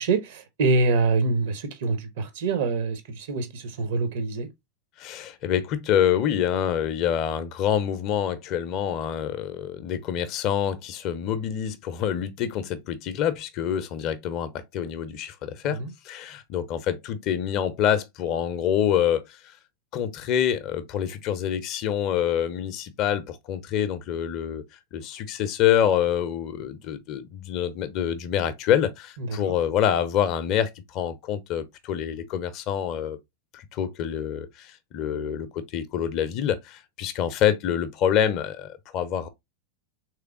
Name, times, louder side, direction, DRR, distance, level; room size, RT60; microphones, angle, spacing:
voice 1, 0.0-4.5 15.6-15.9 29.2-29.4, right 3 dB, 55° right, 0.7 m, -25 dB
voice 2, 5.0-15.8 16.0-19.5 19.9-24.6 24.9-33.2 33.5-39.3, left 9 dB, 40° left, 0.5 m, -26 dB
3.4 x 3.1 x 2.4 m
figure-of-eight pair, 90°, 0 cm